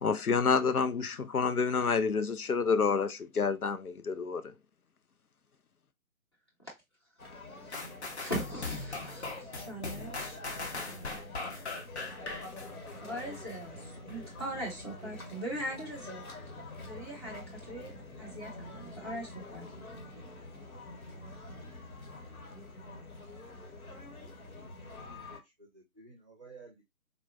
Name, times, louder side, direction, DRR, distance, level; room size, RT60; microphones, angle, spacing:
voice 1, 0.0-4.5, left 5 dB, 90° left, 0.6 m, -28 dB
sound 1, 7.2-25.4, left 2 dB, 75° left, 1.2 m, -46 dB
voice 2, 7.5-7.9 8.2-10.4 13.0-16.2 16.8-17.9 18.2-19.7, right 1 dB, 20° left, 0.7 m, -40 dB
sound 2, 7.7-13.6 14.1-14.2, left 3 dB, 50° left, 0.8 m, -40 dB
voice 3, 24.9-25.2 25.6-26.8, right 4 dB, 25° right, 0.6 m, -54 dB
3.6 x 2.2 x 2.5 m
figure-of-eight pair, 145°, 43 cm